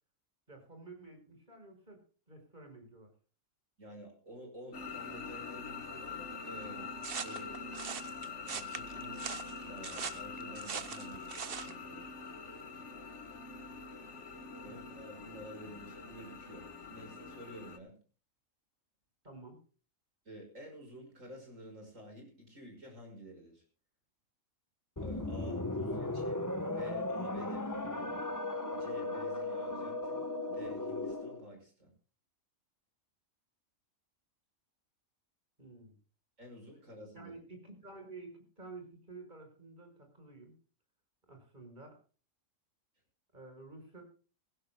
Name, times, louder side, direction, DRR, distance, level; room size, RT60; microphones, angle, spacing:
voice 1, 0.5-2.0 2.3-3.1 14.6-14.8 19.2-19.6 25.6-25.9 35.6-36.0 37.1-38.3 38.6-40.5 41.3-42.0 43.3-44.0, right 3 dB, 35° right, 5 dB, 5.5 m, -51 dB
voice 2, 3.8-7.6 8.4-9.3 9.6-12.1 14.6-18.0 20.3-23.6 25.0-28.2 28.7-31.9 36.4-37.3, equal, 70° right, 3 dB, 6.0 m, -50 dB
sound 1, 4.7-17.8, left 4 dB, 60° left, 1.7 m, -44 dB
sound 2, 7.0-11.7, right 7 dB, 50° right, 1.0 m, -41 dB
sound 3, 25.0-31.4, left 2 dB, 15° left, 1.1 m, -36 dB
21.5 x 15.5 x 2.2 m, 0.37 s
omnidirectional pair, 1.4 m